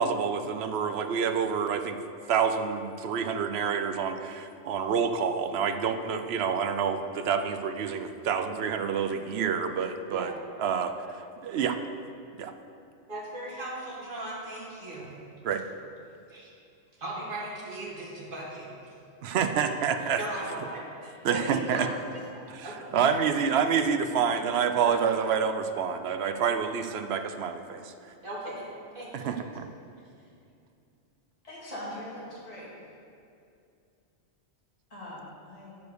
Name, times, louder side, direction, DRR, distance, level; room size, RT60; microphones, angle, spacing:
voice 1, 0.0-2.0 2.3-10.3 10.6-11.8 12.4-12.5 15.4-15.6 19.2-20.2 21.2-21.9 22.5-22.7 22.9-27.5 29.1-29.7, right 6 dB, 70° right, 8 dB, 0.8 m, -28 dB
voice 2, 13.1-15.1 16.3-16.5 17.0-18.7 19.6-21.9 22.1-23.3 24.8-25.2 28.2-28.6 29.0-29.4, right 1 dB, 50° right, -5 dB, 2.1 m, -38 dB
voice 3, 31.4-32.8 34.9-35.7, left 1 dB, 30° left, -7 dB, 2.3 m, -41 dB
10.5 x 4.6 x 6.5 m, 2.5 s
omnidirectional pair, 1.2 m